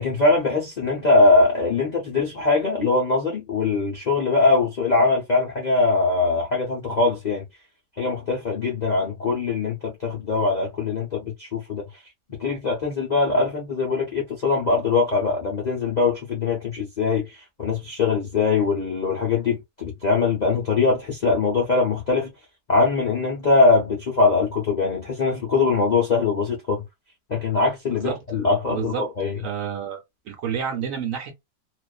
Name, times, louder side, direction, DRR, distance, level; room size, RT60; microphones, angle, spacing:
voice 1, 0.0-7.4 8.0-11.8 12.3-22.3 22.7-26.8 27.3-29.4, left 3 dB, 60° left, 0.4 m, -22 dB
voice 2, 27.9-29.0 29.4-31.3, right 8 dB, 65° right, 0.9 m, -30 dB
2.4 x 2.4 x 2.3 m
omnidirectional pair, 1.7 m